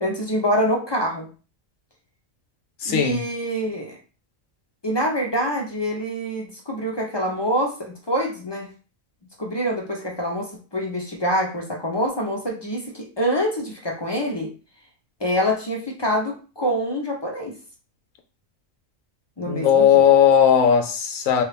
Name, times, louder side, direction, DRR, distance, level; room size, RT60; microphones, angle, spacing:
voice 1, 0.0-1.3 2.9-4.0 4.8-8.7 9.4-14.5 15.2-17.6 19.4-20.0, equal, 30° left, 0.5 m, -25 dB
voice 2, 2.8-3.2 19.5-21.4, left 8 dB, 85° left, 1.1 m, -17 dB
3.4 x 2.4 x 3.3 m
omnidirectional pair, 1.3 m